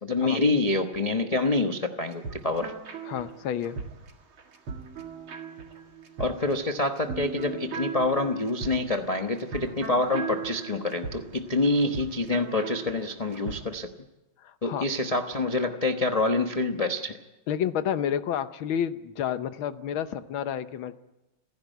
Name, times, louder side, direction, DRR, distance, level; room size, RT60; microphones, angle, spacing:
voice 1, 0.0-2.7 6.2-13.9 14.6-17.2, left 2 dB, 25° left, 4 dB, 0.8 m, -26 dB
sound 1, 2.0-13.6, right 6 dB, 80° right, 2.9 m, -39 dB
voice 2, 3.0-3.8 14.4-14.9 17.5-21.1, left 9 dB, 80° left, 11 dB, 1.7 m, -30 dB
28.5 x 11.0 x 9.2 m, 0.99 s
omnidirectional pair, 2.2 m